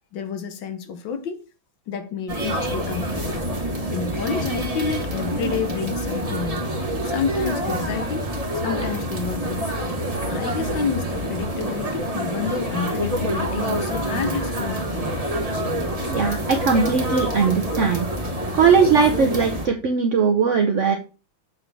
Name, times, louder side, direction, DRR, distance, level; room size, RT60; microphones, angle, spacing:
voice 1, 0.1-1.5 1.9-3.4 3.9-6.7 7.0-9.7 10.3-15.1 16.5-16.6, left 6 dB, 65° left, 1.4 m, -29 dB
sound 1, 2.3-19.7, right 1 dB, 20° right, 1.3 m, -27 dB
voice 2, 16.1-18.1 18.5-20.9, right 5 dB, 70° right, 0.7 m, -19 dB
7.4 x 5.9 x 3.4 m
omnidirectional pair, 2.3 m